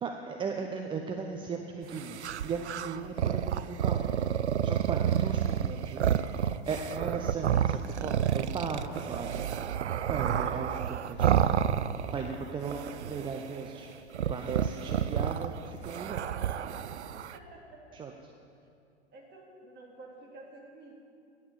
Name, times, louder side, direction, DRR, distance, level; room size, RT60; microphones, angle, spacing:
voice 1, 0.0-4.1 4.6-6.1 6.7-9.5 10.1-11.5 12.1-13.9 14.3-16.3 17.9-18.3, right 5 dB, 15° right, 4 dB, 0.6 m, -37 dB
sound 1, 1.9-12.4 12.6-13.6 14.1-17.4, right 9 dB, 80° right, 0.5 m, -30 dB
voice 2, 17.3-18.0 19.1-20.9, right 2 dB, 30° right, -1 dB, 2.9 m, -50 dB
11.0 x 8.6 x 7.1 m, 2.5 s
figure-of-eight pair, 95°, 34 cm